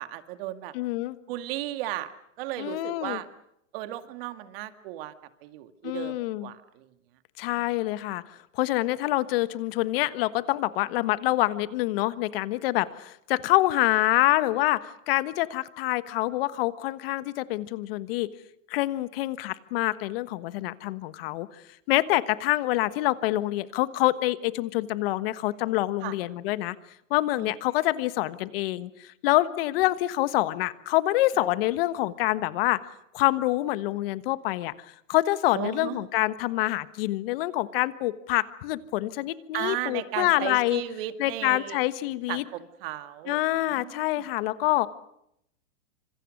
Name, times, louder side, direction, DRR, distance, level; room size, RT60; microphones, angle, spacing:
voice 1, 0.0-0.7 1.3-2.1 2.4-3.3 3.7-5.1 5.4-6.9 26.0-26.1 27.4-27.5 35.5-36.1 39.5-41.8 42.3-43.4 43.7-44.2, right 14 dB, 45° right, 9 dB, 2.1 m, -35 dB
voice 2, 0.7-1.2 2.6-3.2 5.8-6.5 7.4-8.2 8.5-18.3 18.7-21.5 21.9-26.8 27.1-32.8 33.1-34.7 35.1-40.8 41.2-42.4 43.3-44.9, left 17 dB, 45° left, 14 dB, 1.4 m, -26 dB
26.0 x 26.0 x 6.5 m, 0.76 s
hypercardioid pair, 145°, 39 cm